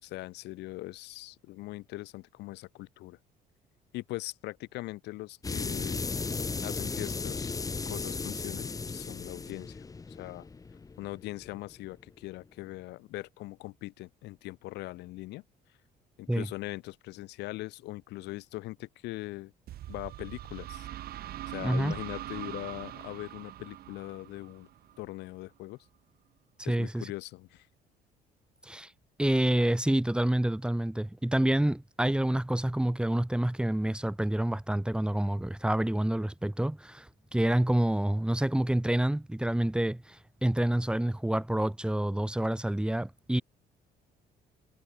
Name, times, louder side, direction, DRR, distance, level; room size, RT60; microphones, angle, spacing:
voice 1, 0.0-3.2 3.9-6.1 6.6-7.6 7.9-10.5 11.0-15.4 16.2-19.5 19.9-20.9 21.5-24.7 25.0-25.9 26.6-27.7, left 19 dB, 85° left, 4.7 m, -41 dB
sound 1, 5.4-11.9, left 4 dB, 20° left, 1.1 m, -36 dB
sound 2, 19.7-25.3, right 13 dB, 65° right, 1.7 m, -42 dB
voice 2, 21.6-21.9 26.7-27.0 28.6-28.9 29.2-43.4, right 1 dB, 5° right, 3.5 m, -28 dB
cardioid pair, 110°, 17 cm